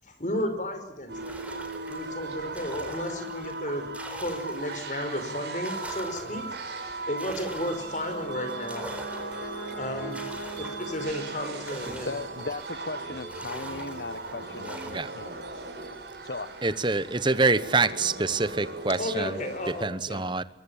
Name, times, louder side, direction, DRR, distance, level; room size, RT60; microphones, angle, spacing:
voice 1, 0.1-1.4 1.9-3.9 4.2-6.6 6.9-8.9 9.8-10.2 10.6-12.1 19.0-20.2, left 1 dB, 45° left, 8 dB, 5.5 m, -33 dB
sound 1, 1.1-5.0 5.4-12.9 13.3-15.2, right 1 dB, 10° right, 3.9 m, -45 dB
sound 2, 1.1-19.9, right 3 dB, 70° right, 5.9 m, -38 dB
Brass instrument, 7.6-12.1, right 1 dB, 90° left, 7.8 m, -40 dB
voice 2, 12.0-15.7 16.2-16.8, left 3 dB, 65° left, 12 dB, 1.2 m, -38 dB
voice 3, 16.6-19.4 19.8-20.4, right 3 dB, 25° right, 15 dB, 1.0 m, -26 dB
23.5 x 23.0 x 7.3 m, 0.82 s
head